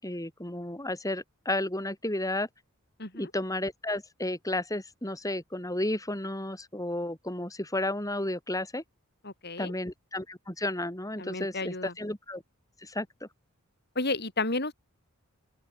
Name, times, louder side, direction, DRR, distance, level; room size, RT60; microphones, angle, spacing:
voice 1, 0.0-2.5 3.2-8.8 9.6-12.4 12.8-13.3, left 1 dB, 15° left, 5.5 m, -32 dB
voice 2, 3.0-3.3 9.2-9.7 11.2-11.9 14.0-14.7, left 3 dB, 50° left, 6.9 m, -32 dB
open air
head